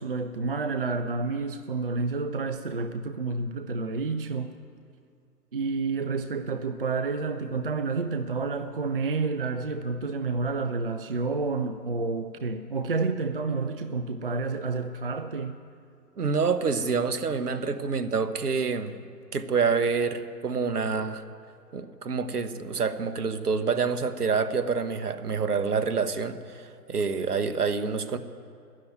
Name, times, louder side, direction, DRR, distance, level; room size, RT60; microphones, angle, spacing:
voice 1, 0.0-4.5 5.5-15.6, right 4 dB, 35° right, 0.5 m, -29 dB
voice 2, 16.2-19.0 19.3-21.2 21.7-28.2, right 5 dB, 65° right, 1.3 m, -27 dB
12.5 x 10.5 x 9.5 m
figure-of-eight pair, 135°, 49 cm